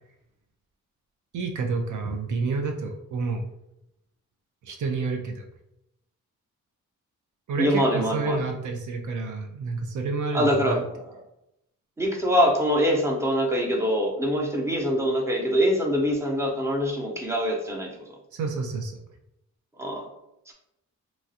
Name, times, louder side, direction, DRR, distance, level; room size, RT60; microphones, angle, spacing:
voice 1, 1.3-3.4 4.6-5.4 7.5-10.8 18.3-19.0, right 3 dB, 70° right, 2 dB, 0.5 m, -29 dB
voice 2, 7.6-8.4 10.3-11.0 12.0-17.9 19.8-20.0 20.5-20.6, equal, 10° right, 0 dB, 0.7 m, -24 dB
3.0 x 2.3 x 2.7 m, 0.83 s
cardioid pair, 70°, 31 cm